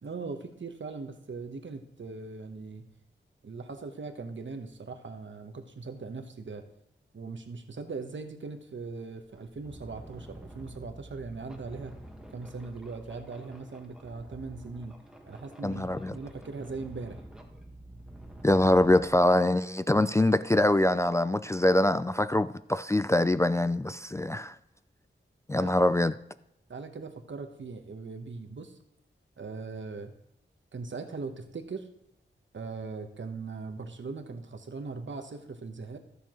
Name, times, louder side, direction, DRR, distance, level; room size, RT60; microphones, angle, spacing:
voice 1, 0.0-2.9 3.4-6.7 7.1-11.9 12.3-15.0 15.3-17.2 25.6-25.7 26.7-28.8 29.4-30.1 30.7-31.9 32.5-36.0, right 4 dB, 65° right, 1.1 m, -40 dB
sound 1, 9.3-19.1, right 1 dB, 5° right, 1.5 m, -48 dB
voice 2, 15.6-16.2 18.4-24.6 25.5-26.1, left 1 dB, 15° left, 0.3 m, -24 dB
14.5 x 6.8 x 3.0 m
cardioid pair, 55°, 20 cm